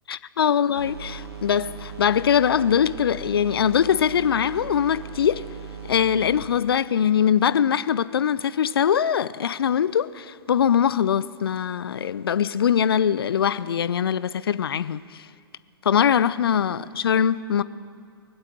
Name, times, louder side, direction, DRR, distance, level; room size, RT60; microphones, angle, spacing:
voice 1, 0.1-5.5 5.9-15.3 15.8-17.6, left 8 dB, 65° left, 0.5 m, -22 dB
sound 1, 0.8-6.5, right 6 dB, 85° right, 2.1 m, -38 dB
22.5 x 8.1 x 6.7 m
figure-of-eight pair, 110°, 13 cm